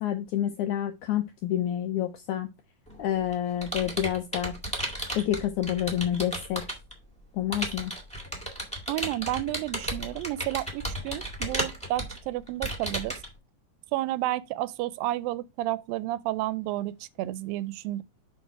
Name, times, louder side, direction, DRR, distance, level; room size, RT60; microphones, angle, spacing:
voice 1, 0.0-2.5 3.0-4.5 5.2-6.6 7.3-7.9, left 11 dB, 80° left, 1.7 m, -28 dB
Computer keyboard, 2.9-6.9 7.5-13.3, right 1 dB, 5° left, 0.8 m, -34 dB
voice 2, 8.9-13.2 13.9-18.0, right 15 dB, 85° right, 2.2 m, -31 dB
6.1 x 5.5 x 4.6 m
omnidirectional pair, 4.1 m